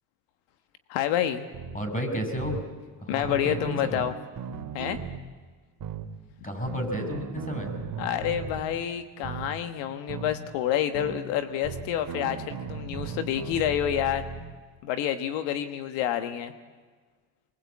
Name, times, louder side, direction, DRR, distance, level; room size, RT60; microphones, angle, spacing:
voice 1, 0.9-1.4 3.1-4.1 4.7-5.0 8.0-14.2 14.8-16.5, left 10 dB, 85° left, 9 dB, 1.4 m, -28 dB
sound 1, 1.5-1.8 2.4-2.6 3.2-5.2 5.8-6.1 6.7-8.6 9.2-9.5 10.1-10.4 10.9-11.2 11.6-14.4, right 5 dB, 50° right, 2.4 m, -36 dB
voice 2, 1.7-2.6 3.0-4.0 6.4-7.7, equal, 20° left, 5 dB, 6.5 m, -32 dB
24.0 x 22.0 x 8.5 m, 1.5 s
supercardioid pair, 90°, 44 cm